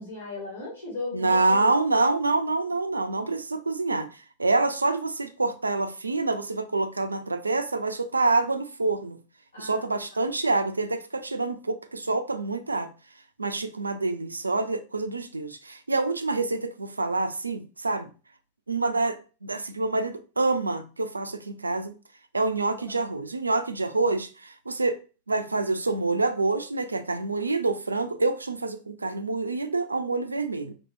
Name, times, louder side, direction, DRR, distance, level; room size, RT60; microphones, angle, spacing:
voice 1, 0.0-1.7 9.5-9.8 10.2-10.3 22.8-23.1, left 3 dB, 75° left, 1.7 m, -37 dB
voice 2, 1.1-4.1 4.4-9.2 9.6-12.9 13.4-18.1 18.7-21.9 22.3-25.0 25.3-30.7, right 3 dB, 80° right, 0.3 m, -27 dB
2.9 x 2.7 x 2.5 m
figure-of-eight pair, 90°, 0 cm